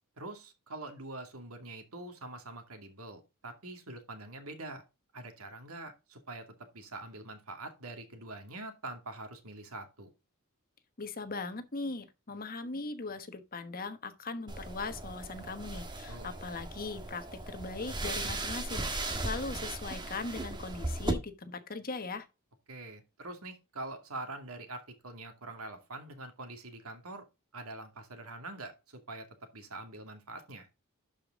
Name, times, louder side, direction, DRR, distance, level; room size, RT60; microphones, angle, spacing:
voice 1, 0.2-4.8 5.1-10.1 16.1-16.3 22.7-27.2 27.5-30.7, right 2 dB, 80° right, 2.3 m, -44 dB
voice 2, 11.0-22.3, left 3 dB, 40° left, 1.3 m, -39 dB
sound 1, 14.5-21.1, right 2 dB, 20° right, 1.5 m, -37 dB
11.5 x 5.2 x 3.7 m
head